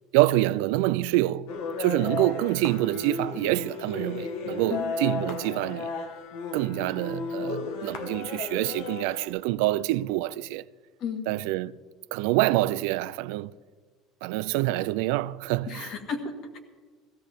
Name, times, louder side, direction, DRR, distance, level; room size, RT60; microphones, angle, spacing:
voice 1, 0.1-5.9 6.5-10.6 11.3-11.7 12.1-13.5 14.2-15.9, right 17 dB, 85° right, 0.4 m, -26 dB
sound 1, 1.5-9.3, left 4 dB, 75° left, 1.6 m, -34 dB
voice 2, 15.7-16.6, left 5 dB, 45° left, 1.8 m, -33 dB
16.5 x 15.0 x 3.6 m
cardioid pair, 170°, 0 cm